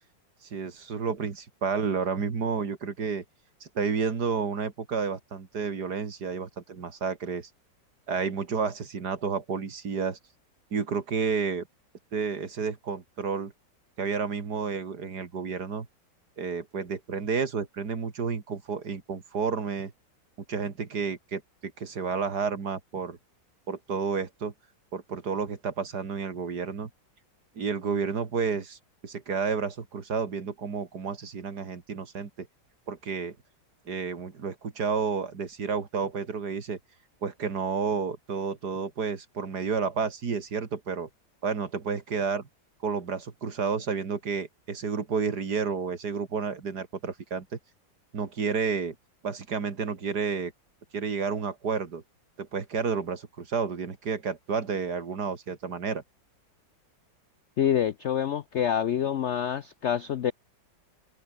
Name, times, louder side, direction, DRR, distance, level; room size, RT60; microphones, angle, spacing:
voice 1, 0.5-3.2 3.6-7.5 8.1-10.2 10.7-11.7 12.1-13.5 14.0-15.9 16.4-19.9 20.5-23.2 23.7-24.5 24.9-26.9 27.6-28.8 29.0-32.5 32.9-33.4 33.9-36.8 37.2-41.1 41.4-42.5 42.8-47.5 48.1-48.9 49.2-50.5 50.9-52.0 52.4-56.0, right 5 dB, 60° right, 2.8 m, -31 dB
voice 2, 57.6-60.3, left 9 dB, 75° left, 0.6 m, -26 dB
omnidirectional pair, 2.0 m